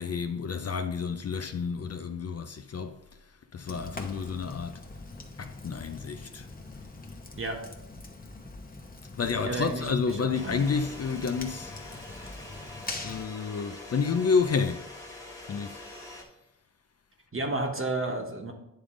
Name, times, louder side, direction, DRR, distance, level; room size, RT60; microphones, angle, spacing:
voice 1, 0.0-3.0 3.5-4.9 5.4-6.5 9.1-11.7 12.9-14.9 15.5-15.8, left 5 dB, 45° left, 0.5 m, -30 dB
Fire, 3.6-13.2, left 2 dB, 25° left, 0.9 m, -43 dB
voice 2, 9.4-10.6 17.3-18.5, right 2 dB, 35° right, 1.3 m, -32 dB
sound 1, 10.3-16.2, left 2 dB, 10° left, 1.4 m, -44 dB
10.0 x 3.5 x 3.8 m
wide cardioid pair, 85°, 35 cm